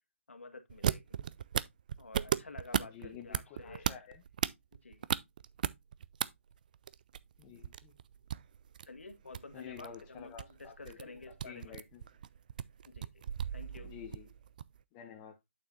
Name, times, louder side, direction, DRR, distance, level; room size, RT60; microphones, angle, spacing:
voice 1, 0.3-1.2 2.0-3.9 4.7-5.1 8.8-11.8 12.9-13.3 13.5-13.9, left 3 dB, 70° left, 1.9 m, -50 dB
sound 1, 0.7-6.3 6.5-14.8, right 9 dB, 40° right, 0.4 m, -36 dB
voice 2, 2.8-4.2 7.4-7.9 9.5-12.1 13.8-14.3 14.9-15.4, left 8 dB, 20° left, 1.0 m, -50 dB
8.7 x 6.9 x 2.5 m
figure-of-eight pair, 140°, 7 cm